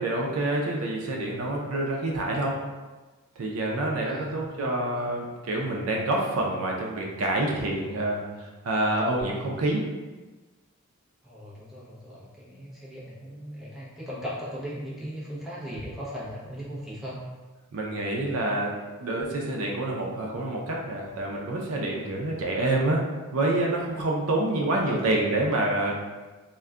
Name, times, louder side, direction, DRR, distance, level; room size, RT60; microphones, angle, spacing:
voice 1, 0.0-2.6 3.4-9.9 17.7-23.0 23.3-26.0, right 2 dB, 70° right, -1 dB, 0.5 m, -27 dB
voice 2, 4.0-5.1 11.2-17.2 24.5-25.1, equal, ahead, -8 dB, 0.6 m, -38 dB
2.3 x 2.1 x 3.5 m, 1.2 s
head